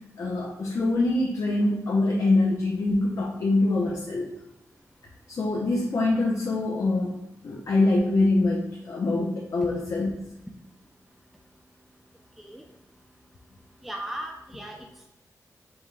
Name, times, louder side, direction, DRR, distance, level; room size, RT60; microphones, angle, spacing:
voice 1, 0.2-4.3 5.3-7.2 7.4-10.1, left 2 dB, 60° left, -2 dB, 0.6 m, -24 dB
voice 2, 13.8-15.1, right 1 dB, ahead, 1 dB, 0.4 m, -37 dB
5.3 x 2.3 x 3.3 m, 0.85 s
wide cardioid pair, 115°, 6 cm